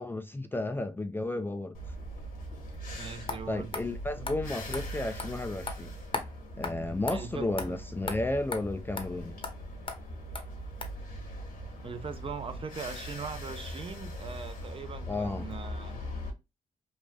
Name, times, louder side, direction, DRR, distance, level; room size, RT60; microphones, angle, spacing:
voice 1, 0.0-1.7 3.5-5.9 6.6-9.4 15.1-15.5, left 2 dB, 15° left, 0.3 m, -33 dB
sound 1, 1.7-16.3, equal, 80° left, 1.3 m, -41 dB
voice 2, 2.9-3.7 7.1-7.8 11.8-16.0, right 5 dB, 40° right, 0.6 m, -40 dB
sound 2, 3.3-3.4 3.7-3.8 4.3-4.4 4.7-4.8 5.2-5.3 5.7-5.8 6.1-6.3 6.6-6.7 7.1-7.2 7.6-7.7 8.1-8.2 8.5-8.6 9.0-9.1 9.4-9.5 9.9-10.0 10.4-10.5 10.8-10.9, left 4 dB, 40° left, 0.8 m, -35 dB
3.2 x 2.4 x 2.2 m
cardioid pair, 65°, 15 cm